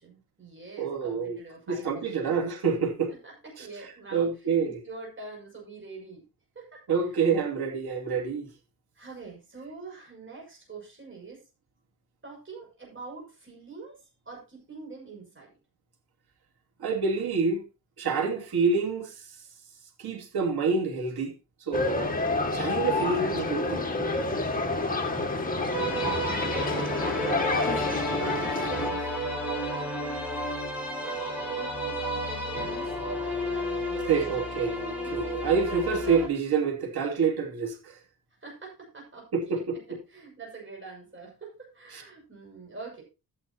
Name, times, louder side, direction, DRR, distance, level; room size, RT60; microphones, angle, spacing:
voice 1, 0.0-2.4 3.1-6.2 6.5-7.2 8.9-11.5 12.2-15.5 22.9-23.1 24.6-25.7 26.1-27.1 27.5-29.4 31.5-34.6 35.0-35.2 38.4-43.0, right 3 dB, 30° right, 6.4 m, -45 dB
voice 2, 0.8-1.4 1.7-3.1 4.1-4.8 6.9-8.5 16.8-17.6 18.0-19.3 20.0-21.3 21.7-22.1 22.5-23.9 34.1-37.9 39.3-39.8 41.9-42.0, right 5 dB, 90° right, 2.6 m, -27 dB
sound 1, 21.7-28.9, left 3 dB, 20° left, 2.1 m, -28 dB
sound 2, 25.7-36.3, equal, 5° right, 5.4 m, -31 dB
13.0 x 10.0 x 2.9 m
cardioid pair, 85°, 37 cm